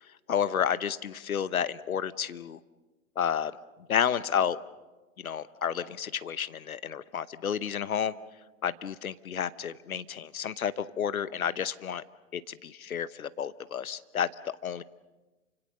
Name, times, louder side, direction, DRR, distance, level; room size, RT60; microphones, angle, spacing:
voice 1, 0.3-2.6 3.2-3.5 3.9-4.6 5.2-8.1 8.6-12.0 12.3-14.8, left 8 dB, 80° left, 16 dB, 1.0 m, -31 dB
28.5 x 25.5 x 6.5 m, 1.2 s
figure-of-eight pair, 100°, 41 cm